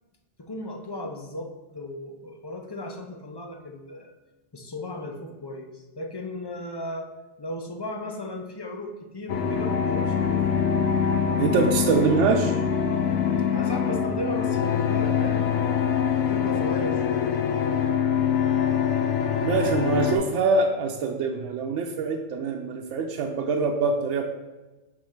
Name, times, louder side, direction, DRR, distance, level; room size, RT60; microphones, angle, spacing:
voice 1, 0.4-4.1 4.5-7.1 7.4-10.4 13.5-15.5 16.2-17.3, left 1 dB, 30° left, 2 dB, 0.5 m, -35 dB
sound 1, 9.3-20.2, left 7 dB, 90° left, 1.0 m, -24 dB
voice 2, 11.4-12.6 19.4-24.2, right 4 dB, 90° right, 2 dB, 0.9 m, -24 dB
5.0 x 3.7 x 5.6 m, 1.1 s
omnidirectional pair, 1.2 m